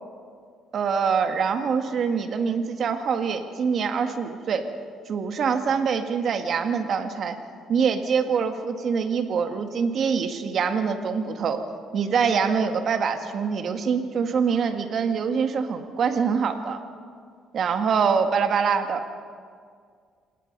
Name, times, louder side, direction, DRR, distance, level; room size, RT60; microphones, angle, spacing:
voice 1, 0.7-4.7 5.1-7.4 7.7-11.6 11.9-16.8 17.5-19.3, right 6 dB, 55° right, 7 dB, 1.8 m, -24 dB
26.5 x 20.0 x 5.4 m, 2.1 s
cardioid pair, 100°, 0 cm